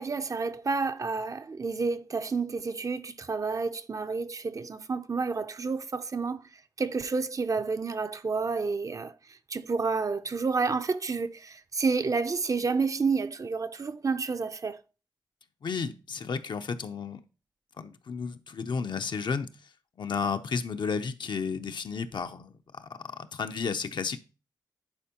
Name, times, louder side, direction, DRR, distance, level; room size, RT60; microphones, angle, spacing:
voice 1, 0.0-6.5 6.8-14.8, right 4 dB, 45° right, 0.5 m, -30 dB
voice 2, 15.6-17.2 17.8-19.5 20.0-24.2, left 5 dB, 70° left, 0.6 m, -33 dB
10.5 x 4.4 x 2.9 m
wide cardioid pair, 90°, 8 cm